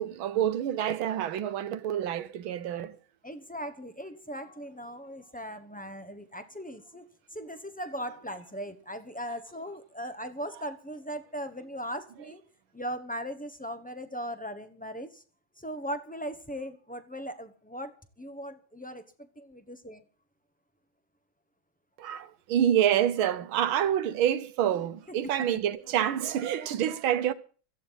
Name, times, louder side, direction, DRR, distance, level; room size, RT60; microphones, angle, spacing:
voice 1, 0.0-3.0 22.0-27.3, right 10 dB, 85° right, 1.7 m, -27 dB
voice 2, 3.2-12.4 12.7-15.2 15.6-20.0 25.5-25.6, equal, 5° left, 0.6 m, -39 dB
17.0 x 14.5 x 4.1 m
omnidirectional pair, 2.2 m